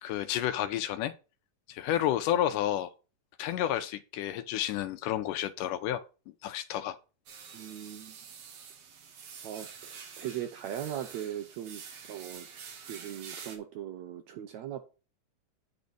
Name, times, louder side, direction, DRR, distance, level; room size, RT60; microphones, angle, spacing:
voice 1, 0.0-1.1 1.7-2.9 3.4-6.0 6.4-7.0, left 12 dB, 80° left, 2.0 m, -30 dB
sound 1, 7.3-13.6, right 6 dB, 60° right, 2.1 m, -47 dB
voice 2, 7.5-8.1 9.4-11.8 12.1-12.5 12.9-14.9, right 10 dB, 75° right, 1.7 m, -39 dB
8.8 x 4.1 x 6.6 m
omnidirectional pair, 3.9 m